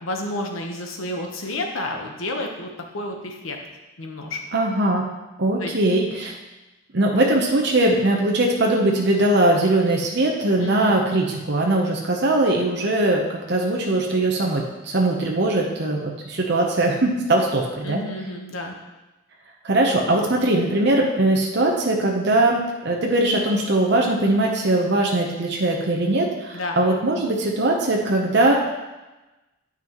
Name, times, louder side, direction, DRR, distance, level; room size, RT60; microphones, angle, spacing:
voice 1, 0.0-3.6 4.0-4.4 5.6-5.7 10.6-11.0 17.8-18.7 26.5-26.8, left 1 dB, 85° left, 2 dB, 1.0 m, -30 dB
voice 2, 4.5-5.1 5.4-6.3 6.9-18.0 19.6-28.8, right 1 dB, 55° right, -1 dB, 0.8 m, -21 dB
8.9 x 5.9 x 3.0 m, 1.1 s
head